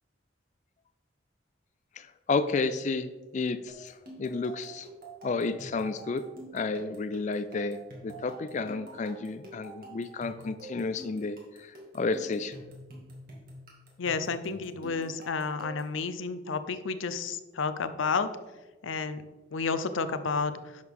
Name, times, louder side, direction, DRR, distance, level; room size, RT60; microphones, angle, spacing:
voice 1, 2.0-3.1 3.3-3.9 4.2-4.9 5.2-6.2 6.5-7.8 8.0-12.5, left 4 dB, 40° left, 11 dB, 0.3 m, -31 dB
sound 1, 3.7-16.0, right 2 dB, 50° right, 2.1 m, -48 dB
voice 2, 14.0-18.3 18.8-19.2 19.5-20.5, left 4 dB, 85° left, 11 dB, 0.6 m, -31 dB
10.5 x 6.5 x 3.6 m, 1.2 s
head